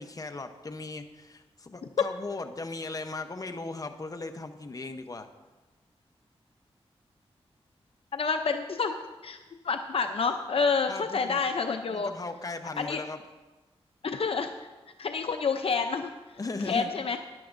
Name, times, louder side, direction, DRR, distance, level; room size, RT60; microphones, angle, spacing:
voice 1, 0.0-5.3 10.9-11.4 11.9-13.2 16.4-16.9, left 3 dB, 35° left, 7 dB, 0.8 m, -37 dB
voice 2, 8.1-8.9 9.2-9.4 9.6-12.1 12.8-13.0 14.0-14.7 15.0-16.4 16.7-17.2, left 5 dB, 65° left, 6 dB, 0.5 m, -28 dB
13.0 x 10.5 x 2.6 m, 1.2 s
cardioid pair, 70°, 11 cm